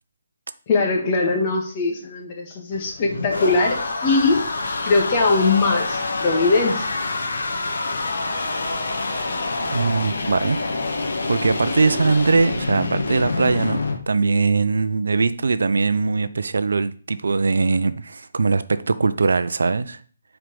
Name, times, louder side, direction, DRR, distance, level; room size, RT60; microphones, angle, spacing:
voice 1, 0.7-4.4 4.9-6.9, left 3 dB, 30° left, 1.8 m, -21 dB
sound 1, 2.7-14.0, left 3 dB, 70° left, 1.8 m, -26 dB
voice 2, 9.6-10.6 11.3-13.8 14.1-20.0, right 4 dB, 80° right, 0.6 m, -21 dB
7.4 x 4.6 x 5.3 m
hypercardioid pair, 160°, 0 cm